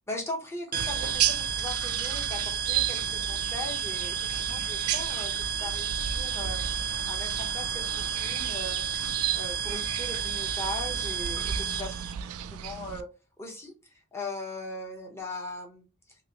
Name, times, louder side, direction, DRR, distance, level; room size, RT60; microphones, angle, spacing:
voice 1, 0.1-6.6 7.0-8.8 9.3-11.9 12.5-13.1 13.4-16.2, left 1 dB, 10° left, -1 dB, 0.8 m, -39 dB
sound 1, 0.7-12.1, right 6 dB, 40° right, 0.6 m, -32 dB
sound 2, 0.8-13.0, right 10 dB, 85° right, 0.3 m, -34 dB
3.0 x 2.9 x 2.8 m, 0.30 s
head